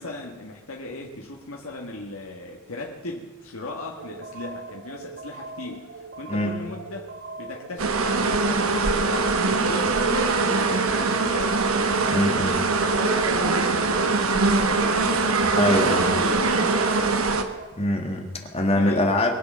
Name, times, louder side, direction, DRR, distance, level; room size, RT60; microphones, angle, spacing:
voice 1, 0.0-11.7 12.4-17.2 18.7-19.1, left 2 dB, 90° left, 0 dB, 1.7 m, -37 dB
sound 1, 4.0-17.7, right 3 dB, 45° right, 1.2 m, -40 dB
sound 2, 7.8-17.4, right 3 dB, 85° right, 1.3 m, -22 dB
voice 2, 12.1-12.6 15.6-16.0 17.7-19.3, left 1 dB, 30° left, 4 dB, 2.1 m, -23 dB
22.5 x 7.8 x 6.9 m, 1.1 s
head